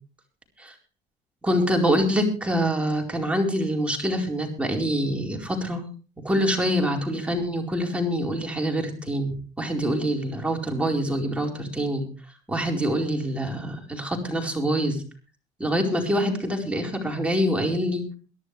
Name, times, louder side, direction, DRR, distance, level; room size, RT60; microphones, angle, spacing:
voice 1, 1.4-5.8 6.2-12.1 12.5-15.0 15.6-18.0, equal, 5° right, 1 dB, 4.6 m, -25 dB
23.0 x 11.0 x 3.4 m, 0.37 s
cardioid pair, 110°, 17 cm